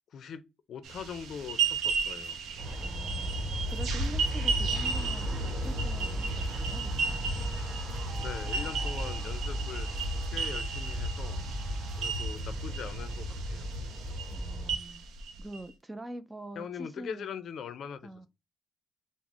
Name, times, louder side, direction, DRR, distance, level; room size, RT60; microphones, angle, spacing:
voice 1, 0.1-2.4 8.2-11.4 12.0-13.7 16.6-18.3, left 7 dB, 65° left, 0.4 m, -42 dB
sound 1, 0.8-15.6, right 6 dB, 80° right, 0.5 m, -35 dB
Aircraft, 2.6-14.8, equal, 50° right, 1.1 m, -34 dB
voice 2, 2.8-7.3 14.3-15.0 15.4-17.3 18.0-18.3, right 1 dB, 15° right, 0.3 m, -44 dB
Wind instrument woodwind instrument, 4.6-12.3, left 2 dB, 25° left, 0.7 m, -52 dB
3.8 x 2.0 x 2.9 m
cardioid pair, 90°, 0 cm